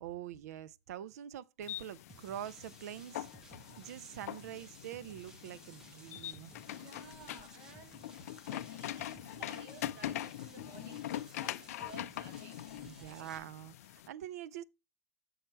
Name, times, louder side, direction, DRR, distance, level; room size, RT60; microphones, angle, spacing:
voice 1, 0.0-3.3 3.8-6.5 12.8-14.6, right 11 dB, 80° right, 0.4 m, -45 dB
sound 1, 1.6-14.1, left 13 dB, 70° left, 0.3 m, -43 dB
sound 2, 2.1-13.4, right 2 dB, 5° right, 0.5 m, -58 dB
voice 2, 6.7-8.0 8.5-12.6 12.9-13.3, right 4 dB, 30° right, 1.4 m, -55 dB
6.3 x 4.5 x 4.4 m
supercardioid pair, 180°, 8 cm